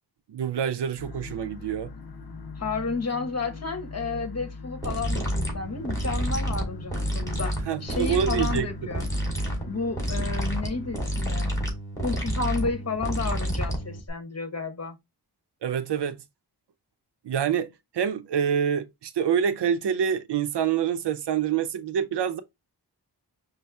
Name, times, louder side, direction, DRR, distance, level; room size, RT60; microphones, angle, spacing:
voice 1, 0.3-1.9 7.6-8.7 15.6-16.2 17.2-22.4, right 8 dB, 85° right, 0.5 m, -26 dB
sound 1, 1.0-11.6, left 4 dB, 65° left, 0.7 m, -42 dB
voice 2, 2.6-7.5 7.8-9.1 9.7-11.5 12.0-15.0, left 4 dB, 40° left, 1.0 m, -31 dB
sound 2, 4.8-14.1, equal, 10° left, 2.2 m, -29 dB
5.2 x 2.0 x 3.4 m
wide cardioid pair, 60°, 40 cm